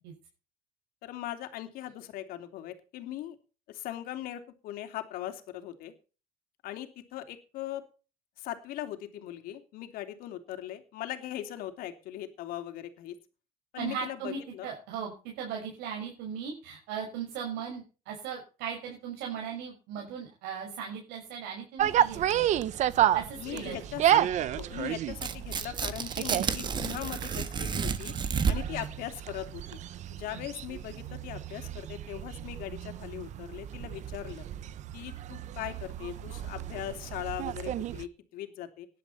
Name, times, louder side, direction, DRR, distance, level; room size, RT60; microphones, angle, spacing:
voice 1, 1.0-3.4 3.7-5.9 6.6-7.8 8.4-13.1 13.7-14.7 23.3-24.2 24.5-29.8 30.1-34.4 34.9-38.9, left 13 dB, 60° left, 7 dB, 3.2 m, -40 dB
voice 2, 13.8-22.5 23.1-23.8 28.5-28.8 30.3-30.4, right 7 dB, 80° right, 1 dB, 6.0 m, -38 dB
sound 1, 21.8-38.0, right 11 dB, 45° right, 1.0 m, -32 dB
Tearing, 25.1-28.8, right 6 dB, 25° right, 1.5 m, -31 dB
18.5 x 11.5 x 4.3 m, 0.35 s
cardioid pair, 145°, 17 cm